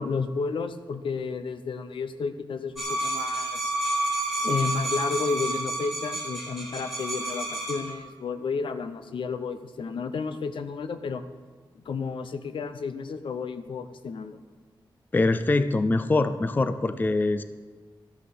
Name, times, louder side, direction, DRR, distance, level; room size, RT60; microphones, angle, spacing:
voice 1, 0.0-3.7 4.4-11.2 11.7-14.4, left 5 dB, 80° left, 10 dB, 0.8 m, -32 dB
sound 1, 2.8-7.9, right 2 dB, ahead, 3.6 m, -30 dB
voice 2, 15.1-17.4, left 2 dB, 20° left, 12 dB, 0.4 m, -23 dB
13.5 x 10.0 x 6.0 m, 1.5 s
wide cardioid pair, 160°, 9 cm